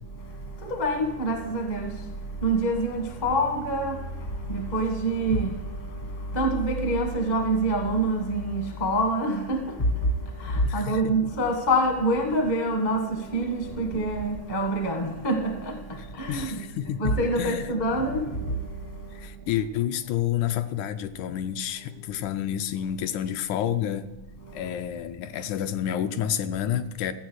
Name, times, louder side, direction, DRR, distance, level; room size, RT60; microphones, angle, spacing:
voice 1, 0.6-1.9 2.4-4.0 4.5-5.6 6.3-9.9 10.4-16.6 17.0-18.5, right 1 dB, 40° left, 0.6 m, -26 dB
voice 2, 10.6-11.3 16.3-17.6 19.1-24.1 24.5-27.1, left 10 dB, 85° left, 2.0 m, -29 dB
14.5 x 7.7 x 6.3 m
omnidirectional pair, 3.5 m